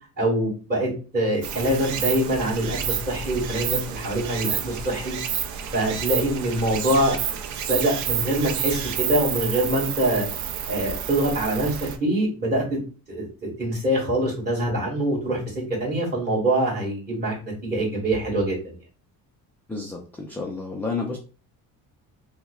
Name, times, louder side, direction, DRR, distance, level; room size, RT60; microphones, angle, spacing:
voice 1, 0.2-5.2 5.7-7.4 7.6-10.3 10.7-11.7 12.0-12.8 13.1-18.8, right 1 dB, 25° right, -5 dB, 2.0 m, -24 dB
Stream, 1.4-12.0, right 8 dB, 50° right, 0.5 m, -30 dB
voice 2, 19.7-21.2, left 4 dB, 5° left, -1 dB, 0.4 m, -30 dB
5.7 x 2.1 x 2.3 m, 0.36 s
cardioid pair, 150°, 37 cm